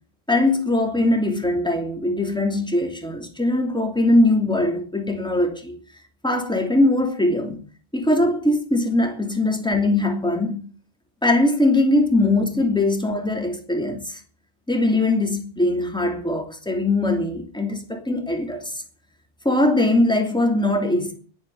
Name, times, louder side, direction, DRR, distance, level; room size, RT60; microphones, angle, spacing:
voice 1, 0.3-5.8 6.2-7.6 7.9-10.6 11.2-14.2 14.7-18.8 19.4-21.1, left 2 dB, 5° left, 2.9 m, -21 dB
11.0 x 9.4 x 9.2 m
omnidirectional pair, 1.1 m